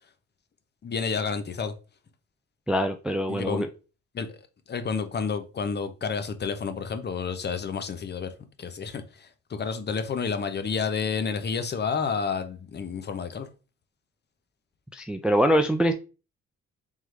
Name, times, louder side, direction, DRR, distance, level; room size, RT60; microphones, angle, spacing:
voice 1, 0.8-1.7 3.3-3.7 4.1-4.4 4.7-8.3 8.6-13.5, left 5 dB, 35° left, 0.6 m, -30 dB
voice 2, 2.7-3.7 14.9-15.9, equal, 5° right, 0.3 m, -23 dB
3.6 x 3.1 x 3.1 m
cardioid pair, 90°, 30 cm